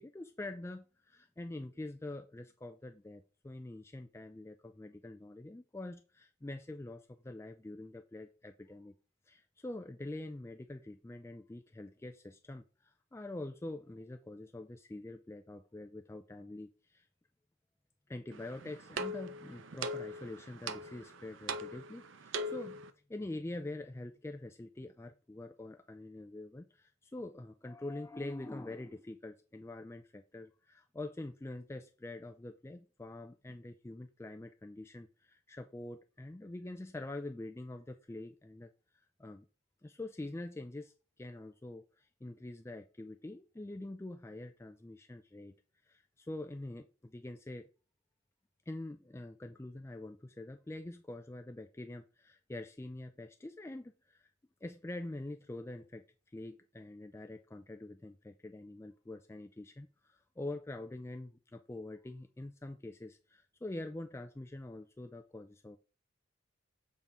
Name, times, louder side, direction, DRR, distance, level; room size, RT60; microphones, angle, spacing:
voice 1, 0.0-8.9 9.3-17.1 18.1-22.8 23.1-39.5 39.8-45.5 45.8-47.7 48.7-54.3 54.6-56.0 56.3-65.8, left 2 dB, 15° left, 0.3 m, -45 dB
sound 1, 18.3-22.9, right 1 dB, 65° right, 0.6 m, -41 dB
7.3 x 3.6 x 5.4 m
head